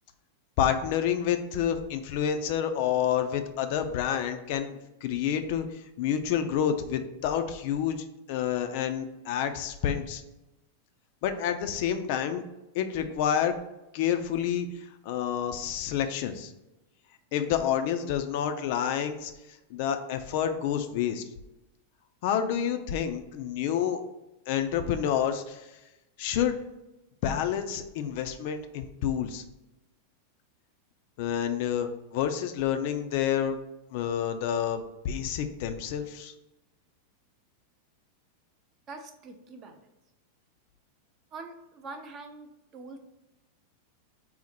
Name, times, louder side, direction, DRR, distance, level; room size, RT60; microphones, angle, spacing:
voice 1, 0.6-10.2 11.2-12.4 12.7-13.5 13.9-14.7 15.0-16.5 17.3-19.3 19.7-21.2 22.2-24.0 24.5-25.7 26.2-26.6 27.2-29.4 31.2-33.6 33.9-36.3, left 9 dB, 50° left, 7 dB, 0.3 m, -29 dB
voice 2, 38.9-39.9 41.3-43.0, right 3 dB, 30° right, 6 dB, 0.5 m, -44 dB
4.0 x 2.1 x 4.2 m, 0.96 s
figure-of-eight pair, 90°, 0 cm